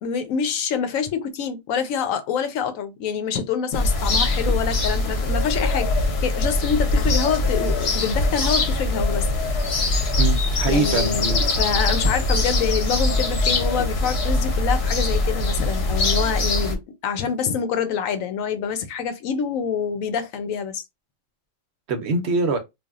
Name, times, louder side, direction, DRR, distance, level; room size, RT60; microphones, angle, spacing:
voice 1, 0.0-9.3 10.6-20.8, left 7 dB, 90° left, 1.1 m, -26 dB
sound 1, 3.7-16.8, left 2 dB, 60° left, 0.9 m, -22 dB
voice 2, 10.2-11.5 21.9-22.6, right 3 dB, 65° right, 0.9 m, -24 dB
3.3 x 2.3 x 2.4 m
omnidirectional pair, 1.3 m